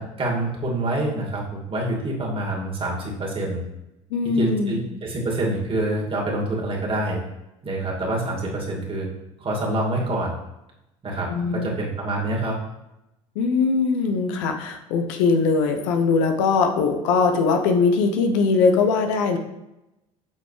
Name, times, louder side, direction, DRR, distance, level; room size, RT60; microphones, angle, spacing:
voice 1, 0.0-3.6 4.4-7.2 7.6-9.1 9.4-10.3 11.0-12.6, right 1 dB, 35° right, -2 dB, 2.4 m, -26 dB
voice 2, 4.1-4.8 11.3-11.7 13.3-19.4, left 4 dB, 70° left, 5 dB, 0.9 m, -21 dB
8.3 x 6.1 x 3.3 m, 0.91 s
hypercardioid pair, 70°, 17 cm